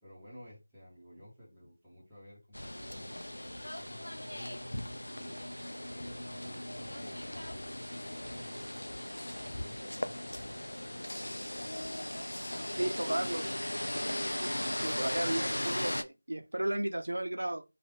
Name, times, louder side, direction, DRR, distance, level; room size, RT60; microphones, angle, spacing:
voice 1, 0.0-3.2 3.6-4.7 5.1-5.6 5.9-8.9 9.3-11.1 11.4-11.8, equal, ahead, 0.8 m, -54 dB
sound 1, 2.5-16.0, left 1 dB, 85° left, 0.3 m, -38 dB
voice 2, 12.8-13.5 13.9-14.5 14.8-17.6, right 1 dB, 70° right, 0.6 m, -34 dB
3.2 x 2.2 x 3.2 m
figure-of-eight pair, 170°, 0 cm